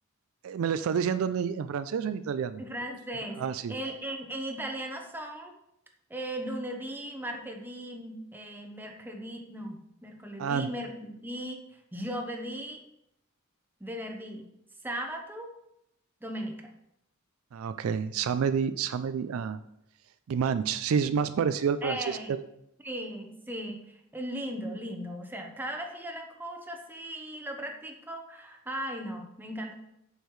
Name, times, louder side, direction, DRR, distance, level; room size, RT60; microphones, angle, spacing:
voice 1, 0.4-2.6 3.4-3.7 10.4-10.7 17.5-19.6 20.3-22.4, right 7 dB, 70° right, 12 dB, 0.3 m, -29 dB
voice 2, 2.6-3.4 3.7-5.5 6.1-11.6 11.9-12.8 13.8-14.5 14.8-15.5 16.2-16.7 21.8-22.3 22.8-29.7, right 1 dB, 10° right, 3 dB, 0.9 m, -37 dB
8.0 x 6.4 x 3.2 m, 0.80 s
head